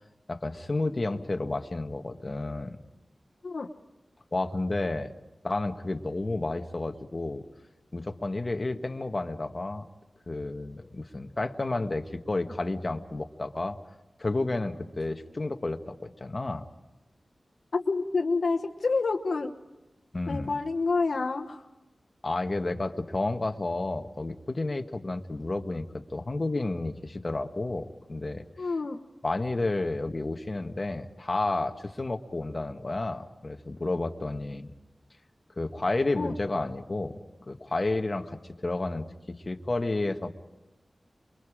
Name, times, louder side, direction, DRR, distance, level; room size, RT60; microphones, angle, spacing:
voice 1, 0.3-2.8 4.3-5.1 5.4-7.4 7.9-9.9 10.3-13.8 14.2-16.6 20.1-20.6 22.2-28.5 29.2-34.7 35.6-37.2 37.5-40.3, left 2 dB, 40° left, 6 dB, 1.4 m, -31 dB
voice 2, 17.7-19.5 20.3-21.6 28.6-29.0 36.1-36.3, left 3 dB, 75° left, 2 dB, 1.1 m, -28 dB
28.0 x 23.0 x 5.0 m, 1.1 s
wide cardioid pair, 75°, 0 cm